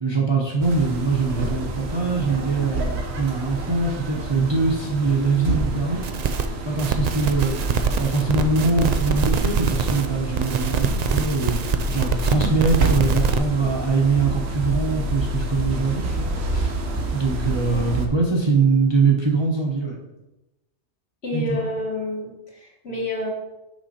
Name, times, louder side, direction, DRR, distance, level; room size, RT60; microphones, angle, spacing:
voice 1, 0.0-6.0 6.6-7.6 8.0-11.6 11.9-16.7 17.1-20.0 21.3-21.6, right 4 dB, 25° right, -2 dB, 0.9 m, -23 dB
sound 1, 0.6-18.1, right 2 dB, 60° right, 1.1 m, -28 dB
sound 2, 6.0-6.5 6.8-10.1 10.3-13.4, right 5 dB, 80° right, 0.3 m, -24 dB
voice 2, 21.2-23.3, left 1 dB, 55° left, -2 dB, 1.9 m, -29 dB
6.2 x 5.8 x 4.3 m, 0.99 s
omnidirectional pair, 1.3 m